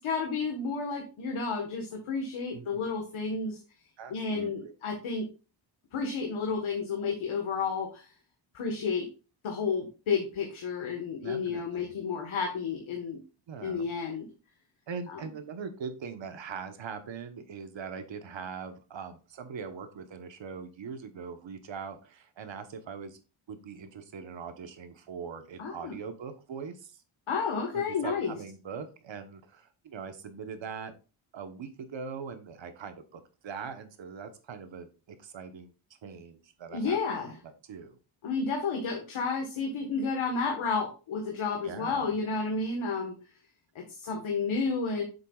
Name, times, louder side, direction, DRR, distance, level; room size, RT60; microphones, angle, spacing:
voice 1, 0.0-3.6 4.1-5.2 5.9-8.1 8.5-9.1 9.4-13.2 13.6-14.3 15.1-15.2 25.6-25.9 27.3-28.3 36.7-37.4 38.2-43.2 43.7-45.0, left 4 dB, 75° left, 1 dB, 1.6 m, -31 dB
voice 2, 2.5-2.9 4.0-4.7 11.2-12.0 13.5-13.9 14.9-23.2 23.5-27.0 27.7-30.9 31.3-35.7 36.0-37.0 37.3-37.4 37.6-38.0 41.6-42.2, right 6 dB, 65° right, 9 dB, 1.2 m, -41 dB
8.1 x 6.6 x 2.4 m, 0.33 s
wide cardioid pair, 135°, 49 cm